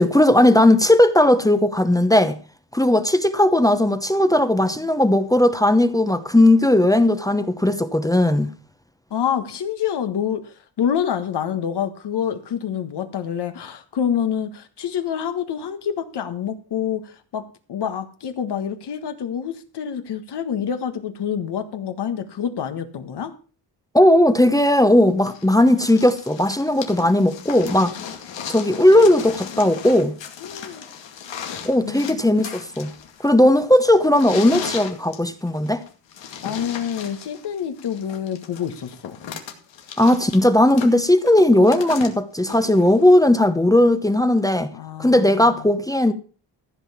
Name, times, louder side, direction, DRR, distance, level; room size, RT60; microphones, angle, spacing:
voice 1, 0.0-2.4 2.7-8.5 23.9-27.9 28.5-30.2 31.6-32.9 33.2-35.8 40.0-44.7 45.0-46.1, left 1 dB, 10° left, 0.9 m, -17 dB
voice 2, 9.1-10.4 10.8-17.4 17.7-23.3 30.4-30.8 31.8-32.4 36.4-39.2 44.7-45.2, left 8 dB, 65° left, 1.5 m, -27 dB
sound 1, 25.3-43.4 44.4-44.5, left 8 dB, 85° left, 2.3 m, -36 dB
14.5 x 5.6 x 7.2 m
cardioid pair, 105°, 43 cm